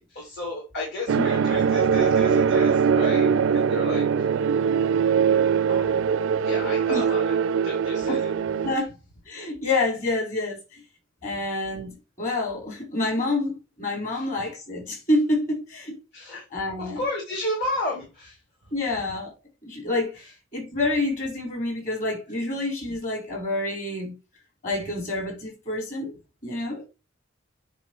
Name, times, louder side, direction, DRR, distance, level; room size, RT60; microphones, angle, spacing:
voice 1, 0.0-4.0 5.7-6.1 6.4-7.4 7.6-8.3 14.1-14.2 16.1-16.4 16.8-18.4, left 1 dB, 55° left, 3.3 m, -32 dB
sound 1, 1.1-8.8, right 6 dB, 70° right, 0.4 m, -22 dB
voice 2, 9.3-10.8 11.2-15.9 16.5-17.0 18.7-19.3 19.6-20.2 20.5-24.1 24.6-26.1 26.4-26.8, left 2 dB, 40° left, 4.1 m, -28 dB
9.8 x 3.5 x 4.6 m
head